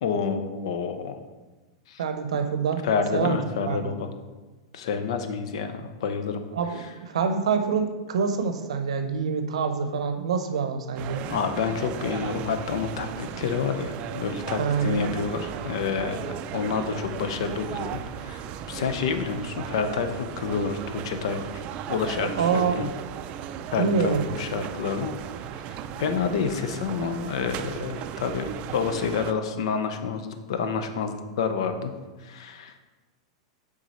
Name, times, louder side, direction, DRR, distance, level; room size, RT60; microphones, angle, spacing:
voice 1, 0.0-1.2 1.9-2.0 2.8-4.1 4.7-6.4 11.2-21.6 21.9-22.9 23.7-25.1 26.0-31.9 32.2-32.9, left 6 dB, 70° left, 8 dB, 0.7 m, -29 dB
voice 2, 2.0-2.9 3.1-3.9 6.5-11.2 14.6-15.0 22.4-22.8 23.8-24.3, right 6 dB, 85° right, 7 dB, 0.7 m, -26 dB
sound 1, 10.9-29.3, right 9 dB, 40° right, 0.3 m, -36 dB
6.2 x 3.9 x 4.2 m, 1.2 s
hypercardioid pair, 130°, 3 cm